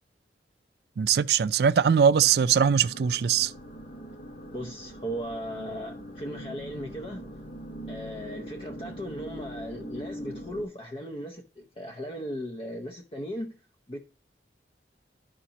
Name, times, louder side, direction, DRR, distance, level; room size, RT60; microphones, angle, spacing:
voice 1, 1.0-3.5, right 7 dB, 60° right, 0.3 m, -21 dB
sound 1, 2.2-10.6, equal, 50° left, 1.3 m, -42 dB
voice 2, 4.5-7.3 7.9-13.5 13.9-14.0, equal, 30° left, 0.7 m, -37 dB
12.5 x 5.0 x 2.9 m
head